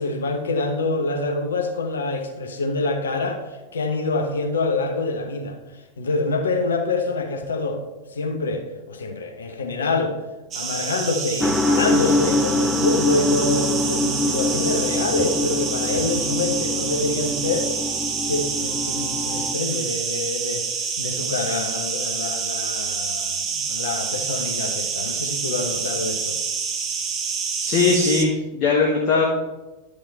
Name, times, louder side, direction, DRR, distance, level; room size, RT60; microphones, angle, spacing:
voice 1, 0.0-5.6 6.0-7.8 8.1-10.2 10.5-17.7 18.2-20.7 21.0-26.4, left 3 dB, 70° left, 5 dB, 1.0 m, -26 dB
sound 1, 10.5-28.3, right 5 dB, 30° right, 0.8 m, -27 dB
sound 2, 11.4-19.5, left 2 dB, 10° left, 0.4 m, -25 dB
voice 2, 27.6-29.2, left 4 dB, 40° left, -3 dB, 1.4 m, -20 dB
11.0 x 4.8 x 4.2 m, 1.1 s
figure-of-eight pair, 90°, 0 cm